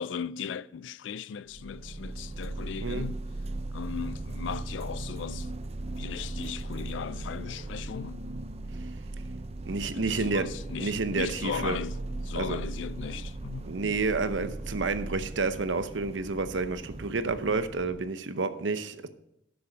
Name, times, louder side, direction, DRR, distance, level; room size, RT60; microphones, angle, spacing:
voice 1, 0.0-3.2 3.7-5.5 6.0-8.2 9.9-12.0 12.2-13.7, left 7 dB, 85° left, 0.4 m, -37 dB
sound 1, 1.5-18.1, right 2 dB, 35° right, 0.5 m, -38 dB
voice 2, 9.7-10.5 10.8-11.8 12.4-12.6 13.6-19.1, right 3 dB, 85° right, 0.8 m, -30 dB
12.0 x 6.9 x 5.1 m
head